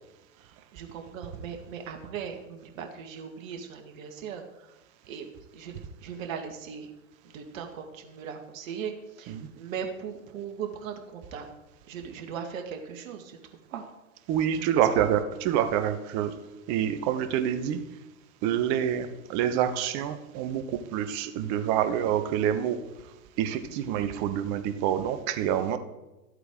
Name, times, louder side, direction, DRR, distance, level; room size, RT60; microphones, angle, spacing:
voice 1, 0.4-4.7 5.1-5.3 5.5-6.9 7.3-11.5 11.9-13.4 13.7-13.8 14.9-15.1, right 7 dB, 60° right, 4 dB, 2.0 m, -38 dB
voice 2, 14.3-16.3 16.7-17.8 18.4-22.8 23.4-25.8, right 9 dB, 40° right, 10 dB, 1.1 m, -27 dB
13.5 x 8.0 x 3.8 m, 1.0 s
hypercardioid pair, 110°, 45 cm